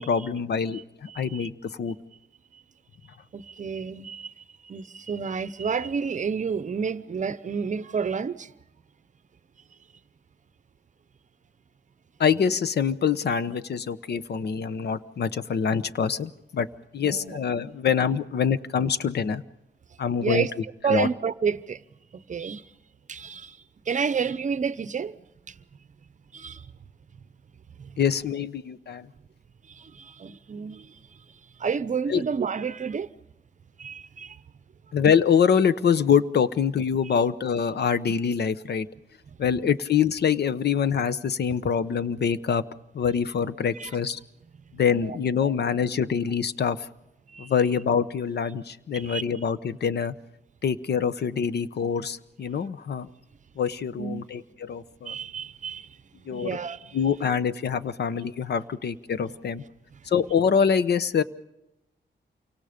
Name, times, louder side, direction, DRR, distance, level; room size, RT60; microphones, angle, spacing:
voice 1, 0.0-1.9 12.2-16.7 16.9-19.4 20.0-20.5 20.9-21.1 28.0-29.1 32.1-32.2 34.9-38.9 39.4-42.6 42.9-44.2 44.7-46.9 47.4-50.1 50.6-53.1 53.6-55.2 56.3-56.6 56.9-59.6 60.1-61.2, left 7 dB, 65° left, 0.9 m, -25 dB
voice 2, 1.1-1.5 3.3-8.5 17.0-17.4 20.2-20.5 20.8-21.8 22.3-22.6 23.1-23.6 23.9-25.2 25.5-25.6 26.3-26.7 27.8-28.0 29.7-30.9 31.6-33.1 33.8-34.4 43.7-43.9 44.9-45.2 47.3-47.5 48.9-49.2 54.0-54.2 55.1-55.9 56.3-57.0, right 6 dB, 45° right, 0.8 m, -30 dB
28.5 x 25.0 x 5.1 m
wide cardioid pair, 130°, 18 cm